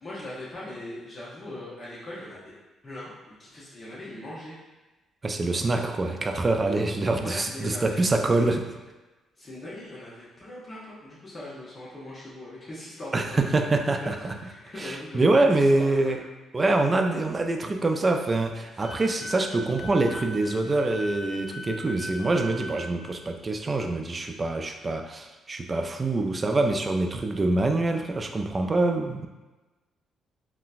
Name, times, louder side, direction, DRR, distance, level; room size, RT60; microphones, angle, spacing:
voice 1, 0.0-2.5 2.8-4.6 7.2-8.5 9.4-14.1 14.4-15.5 15.8-16.2 18.7-18.8, left 1 dB, 30° left, -8 dB, 0.8 m, -40 dB
voice 2, 5.2-8.7 13.1-14.3 14.8-16.2 16.5-29.3, right 2 dB, 30° right, 5 dB, 0.3 m, -25 dB
Wind instrument woodwind instrument, 18.8-22.9, equal, 55° left, 1.0 m, -39 dB
3.9 x 2.1 x 2.4 m, 1.1 s
cardioid pair, 90°, 0 cm